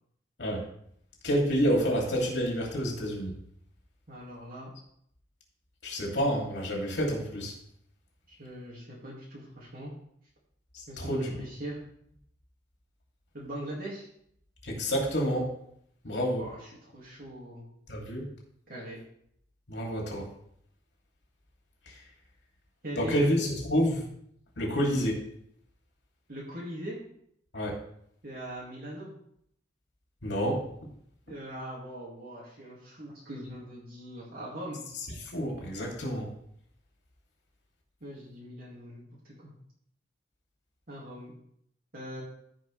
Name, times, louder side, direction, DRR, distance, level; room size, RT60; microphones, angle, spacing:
voice 1, 1.2-3.3 5.8-7.5 10.7-11.4 14.6-15.5 16.0-16.5 17.9-18.3 19.7-20.3 21.9-22.0 23.0-24.1 24.6-25.2 27.5-27.8 30.2-30.7 35.3-36.3, equal, 75° left, -1 dB, 2.8 m, -28 dB
voice 2, 4.1-4.7 8.3-9.9 10.9-11.8 13.3-14.1 16.4-17.7 18.7-19.0 22.8-23.3 26.3-27.0 28.2-29.1 31.3-34.9 38.0-39.5 40.9-41.3 41.9-42.2, right 1 dB, 55° right, -6 dB, 2.2 m, -41 dB
15.0 x 5.1 x 3.3 m, 0.69 s
head